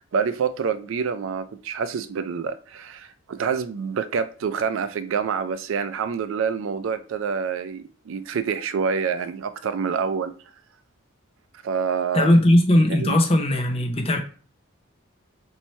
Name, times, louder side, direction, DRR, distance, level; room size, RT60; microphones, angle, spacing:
voice 1, 0.1-10.3 11.6-12.3 12.9-13.2, right 6 dB, 70° right, 0.4 m, -27 dB
voice 2, 12.1-14.2, left 1 dB, 30° left, 0.6 m, -18 dB
3.1 x 2.7 x 4.2 m
head